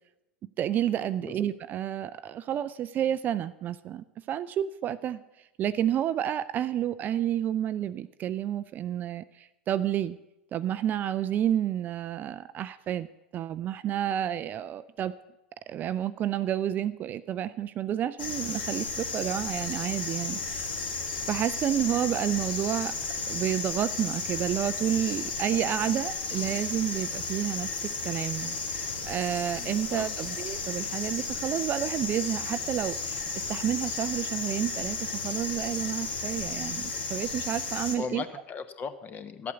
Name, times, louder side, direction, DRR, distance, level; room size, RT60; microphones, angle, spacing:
voice 1, 0.6-10.2 10.5-13.1 13.3-15.1 15.7-20.8 21.3-22.9 23.3-38.2, right 10 dB, 30° right, 14 dB, 0.4 m, -30 dB
sound 1, 18.2-38.0, left 4 dB, 70° left, 2.1 m, -33 dB
voice 2, 29.6-30.1 38.0-39.5, left 5 dB, 30° left, 11 dB, 1.0 m, -37 dB
12.0 x 8.4 x 7.0 m, 0.92 s
figure-of-eight pair, 85°, 6 cm